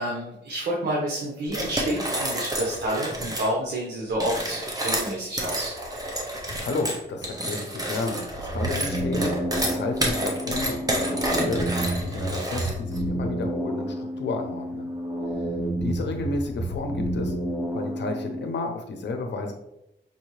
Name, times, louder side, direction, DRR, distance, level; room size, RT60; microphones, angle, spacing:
voice 1, 0.0-5.8, right 1 dB, 70° right, -3 dB, 1.0 m, -29 dB
sound 1, 1.5-3.5 4.1-13.0, right 1 dB, 20° right, 0.8 m, -29 dB
voice 2, 6.6-11.7 12.0-14.9 15.3-15.5 15.8-17.3 17.7-19.5, left 3 dB, 75° left, 5 dB, 0.7 m, -31 dB
sound 2, 8.4-18.4, right 1 dB, 5° right, 1.5 m, -30 dB
5.3 x 2.7 x 3.1 m, 0.86 s
wide cardioid pair, 105°, 18 cm